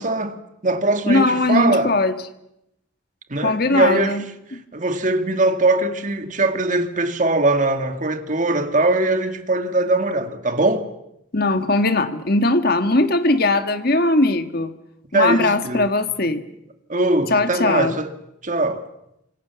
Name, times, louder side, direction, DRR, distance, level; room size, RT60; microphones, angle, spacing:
voice 1, 0.0-2.0 3.3-4.2 4.7-10.9 15.1-15.9 16.9-18.1 18.4-18.9, right 2 dB, 40° right, 2.1 m, -21 dB
voice 2, 1.1-2.1 3.4-4.2 4.5-4.6 11.3-14.7 15.1-16.4 17.3-18.0, left 2 dB, 50° left, 1.8 m, -19 dB
29.0 x 26.5 x 7.1 m
head